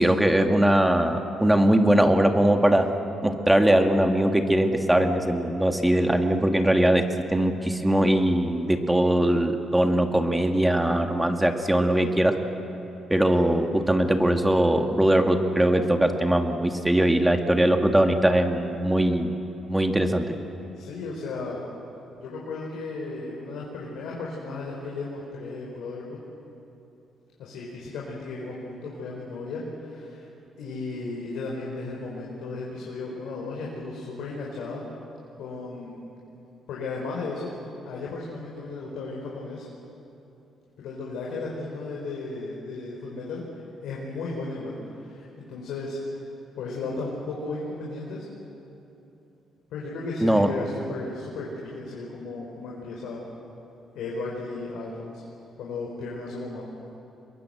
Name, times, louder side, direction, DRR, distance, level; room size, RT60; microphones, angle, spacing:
voice 1, 0.0-2.9 3.2-7.0 7.3-12.4 13.1-19.3 19.7-20.3 50.2-50.5, right 1 dB, 10° right, 4 dB, 1.9 m, -21 dB
voice 2, 20.8-21.6 22.2-26.2 27.4-30.3 30.6-34.8 35.4-36.0 36.7-37.5 37.8-39.7 40.8-46.2 46.6-48.2 49.7-53.2 53.9-55.2 55.6-56.7, left 3 dB, 85° left, -3 dB, 4.5 m, -35 dB
25.0 x 22.0 x 7.9 m, 3.0 s
cardioid pair, 90°, 0 cm